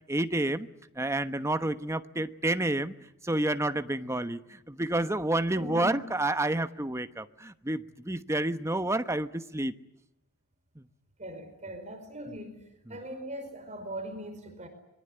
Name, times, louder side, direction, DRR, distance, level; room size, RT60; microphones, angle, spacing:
voice 1, 0.1-0.7 1.0-2.9 3.2-9.8 10.8-10.9 12.3-12.4 12.9-13.0, right 1 dB, 15° right, 1.1 m, -29 dB
voice 2, 5.5-6.0 11.2-12.6 12.9-14.7, equal, 30° right, 4.9 m, -40 dB
26.0 x 22.5 x 9.9 m
head